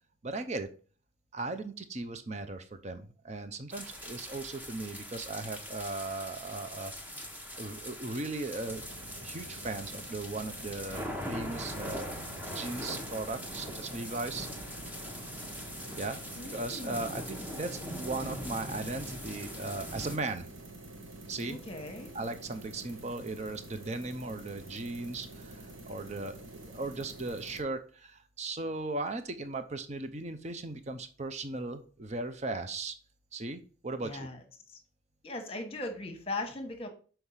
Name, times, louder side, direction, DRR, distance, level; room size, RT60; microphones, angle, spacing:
voice 1, 0.2-0.7 1.3-6.9 7.5-8.9 9.2-12.1 12.5-14.5 16.0-16.2 16.5-20.5 21.3-21.6 22.1-32.9 33.3-34.3, right 2 dB, 35° right, 9 dB, 0.7 m, -37 dB
sound 1, 3.7-20.2, equal, 10° right, 0.9 m, -42 dB
sound 2, 8.6-27.6, right 2 dB, 90° right, 1.5 m, -48 dB
voice 2, 16.4-17.2 21.5-22.1 34.0-34.4 34.7-34.8 35.2-36.9, left 2 dB, 30° left, 6 dB, 1.2 m, -39 dB
6.4 x 4.5 x 5.6 m, 0.39 s
head